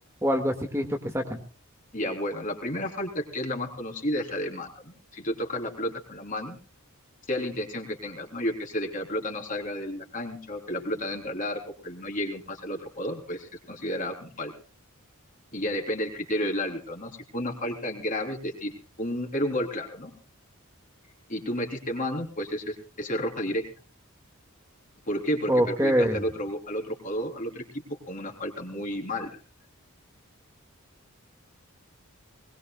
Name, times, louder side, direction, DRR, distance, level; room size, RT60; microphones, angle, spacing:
voice 1, 0.2-1.4 25.5-26.2, equal, 15° right, 3 dB, 1.9 m, -24 dB
voice 2, 1.9-6.6 7.3-14.5 15.5-18.7 19.0-20.1 21.3-23.7 25.1-27.6 27.9-29.4, equal, 40° left, 2 dB, 3.6 m, -32 dB
21.0 x 21.0 x 2.3 m, 0.38 s
head